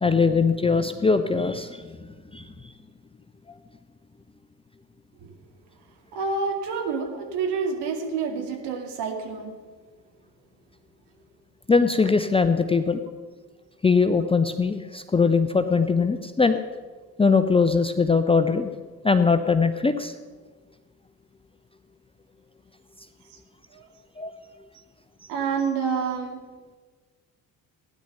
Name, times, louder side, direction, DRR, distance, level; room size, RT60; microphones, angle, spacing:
voice 1, 0.0-1.8 2.3-2.4 11.7-13.0 13.8-16.6 17.2-18.7 19.0-20.1 24.2-24.3, left 4 dB, 10° left, 9 dB, 0.7 m, -21 dB
voice 2, 6.1-9.5 23.3-23.4 23.7-23.9 25.3-26.4, right 5 dB, 55° right, 3 dB, 2.4 m, -28 dB
16.5 x 10.0 x 5.7 m, 1.4 s
figure-of-eight pair, 55°, 49 cm